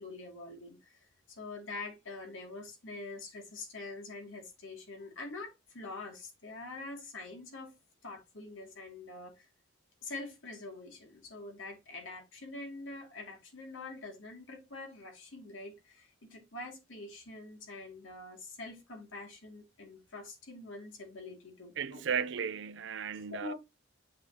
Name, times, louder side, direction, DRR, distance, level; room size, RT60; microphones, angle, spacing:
voice 1, 0.0-7.7 8.0-9.5 10.0-22.0 23.3-23.5, left 2 dB, 85° left, 2.4 m, -45 dB
voice 2, 21.8-23.5, right 7 dB, 65° right, 0.5 m, -35 dB
7.9 x 5.5 x 2.9 m
head